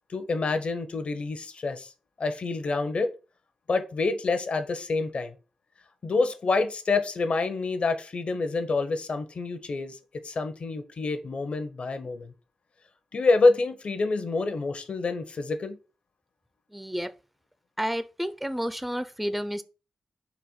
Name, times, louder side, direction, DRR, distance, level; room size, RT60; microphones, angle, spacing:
voice 1, 0.1-1.9 2.2-3.1 3.7-5.3 6.0-10.0 10.2-12.3 13.1-15.8, left 3 dB, 60° left, 0.6 m, -27 dB
voice 2, 16.7-17.1 17.8-19.6, equal, 5° right, 0.3 m, -30 dB
4.0 x 2.2 x 4.2 m
supercardioid pair, 45°, 2 cm